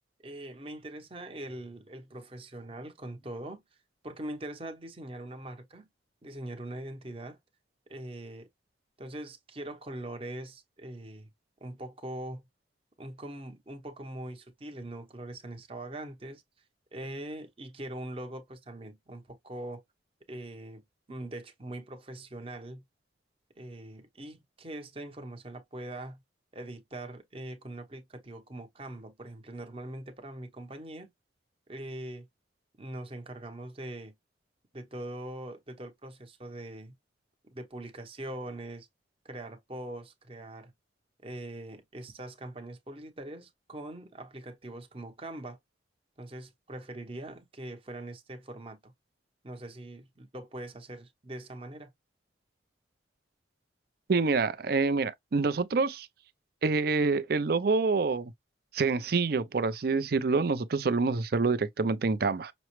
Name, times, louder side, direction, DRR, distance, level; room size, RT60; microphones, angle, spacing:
voice 1, 0.2-3.6 4.0-5.9 6.2-7.4 7.9-8.5 9.0-11.3 11.6-12.4 13.0-16.4 16.9-19.8 20.3-20.8 21.1-22.8 23.6-26.2 26.5-31.1 31.7-32.3 32.8-34.1 34.7-36.9 37.5-38.9 39.2-40.7 41.2-45.6 46.2-48.9 49.4-51.9, right 1 dB, 30° right, 0.9 m, -42 dB
voice 2, 54.1-56.1 56.6-58.3 58.7-62.5, right 4 dB, 55° right, 0.5 m, -27 dB
6.0 x 2.0 x 3.0 m
head